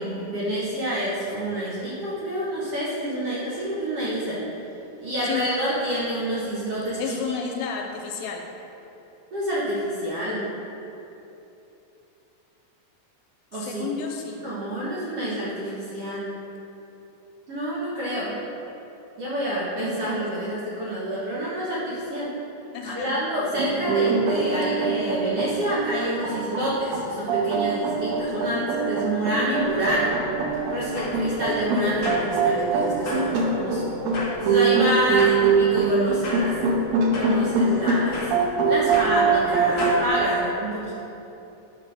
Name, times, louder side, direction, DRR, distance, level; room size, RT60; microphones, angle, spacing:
voice 1, 0.0-4.4 5.0-7.1 9.3-10.4 13.5-13.9 14.4-16.3 17.5-18.3 19.2-22.3 22.8-30.2 30.7-33.8 34.4-36.6 37.1-38.4 38.7-40.9, equal, 60° right, -8 dB, 1.6 m, -28 dB
voice 2, 7.0-8.5 13.5-14.5 20.0-20.5 22.7-23.2 28.3-28.7 29.3-29.6, left 7 dB, 90° left, 2 dB, 2.7 m, -32 dB
sound 1, 23.6-40.1, right 4 dB, 80° right, 2.6 m, -23 dB
sound 2, 29.6-40.0, left 2 dB, 50° left, 1.4 m, -36 dB
10.5 x 3.8 x 6.3 m, 2.9 s
omnidirectional pair, 4.2 m